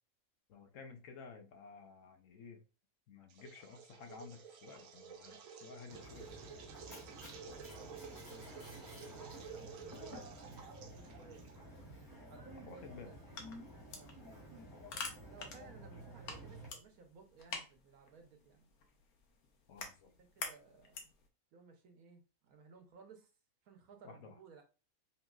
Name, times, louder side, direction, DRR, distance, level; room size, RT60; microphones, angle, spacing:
voice 1, 0.5-2.6 3.1-6.3 12.7-13.1 15.7-15.9 19.7-20.1 24.0-24.4, left 5 dB, 65° left, 1.0 m, -53 dB
sound 1, 3.3-11.8, right 6 dB, 70° right, 1.0 m, -52 dB
Mechanisms, 5.9-16.7, right 1 dB, 25° left, 2.3 m, -52 dB
voice 2, 9.1-13.2 13.9-14.2 15.3-18.7 20.2-21.0 21.5-23.3 23.6-24.6, right 5 dB, 90° right, 1.3 m, -59 dB
sound 2, 13.0-21.3, left 4 dB, 85° left, 1.3 m, -49 dB
5.3 x 2.9 x 2.3 m
omnidirectional pair, 1.5 m